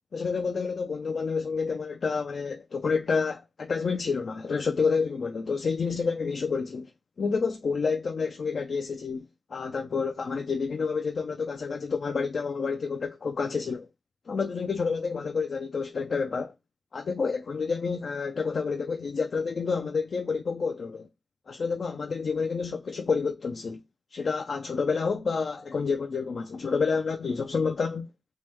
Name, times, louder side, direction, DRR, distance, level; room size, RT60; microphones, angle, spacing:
voice 1, 0.1-6.9 7.2-13.9 14.3-16.5 16.9-21.1 21.5-23.8 24.1-28.1, left 5 dB, 75° left, 0.3 m, -29 dB
3.5 x 2.1 x 3.0 m
cardioid pair, 50°, 0 cm